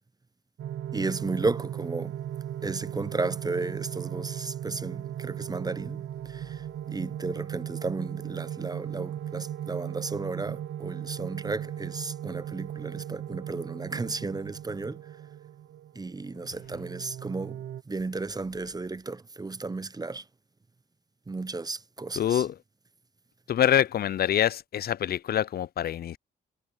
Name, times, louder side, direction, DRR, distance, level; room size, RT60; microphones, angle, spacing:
sound 1, 0.6-17.8, right 10 dB, 70° right, 0.6 m, -37 dB
voice 1, 0.9-2.2 2.6-15.0 15.9-20.3 21.3-22.4, right 3 dB, 20° right, 0.5 m, -34 dB
voice 2, 22.2-22.5 23.5-26.2, left 10 dB, 50° left, 0.4 m, -25 dB
cardioid pair, 70°, 21 cm